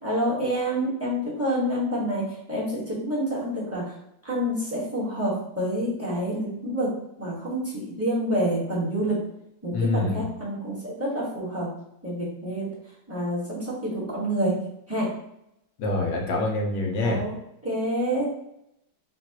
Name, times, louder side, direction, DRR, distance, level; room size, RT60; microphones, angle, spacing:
voice 1, 0.0-3.8 4.2-9.2 9.6-11.7 12.0-12.7 13.1-14.6 14.9-15.1 17.0-17.3 17.6-18.3, equal, 10° right, -8 dB, 1.4 m, -27 dB
voice 2, 9.7-10.3 15.8-17.2, left 2 dB, 80° left, 0 dB, 1.6 m, -25 dB
5.7 x 2.7 x 2.9 m, 0.82 s
omnidirectional pair, 1.9 m